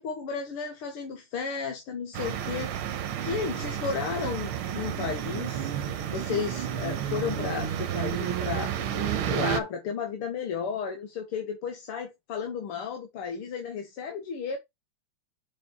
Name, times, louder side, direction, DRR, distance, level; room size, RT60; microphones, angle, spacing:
voice 1, 0.0-2.8 3.2-5.7 6.1-8.7 9.3-14.6, left 6 dB, 85° left, 2.2 m, -33 dB
sound 1, 2.1-9.6, right 9 dB, 75° right, 1.8 m, -31 dB
6.3 x 4.8 x 4.0 m
omnidirectional pair, 2.4 m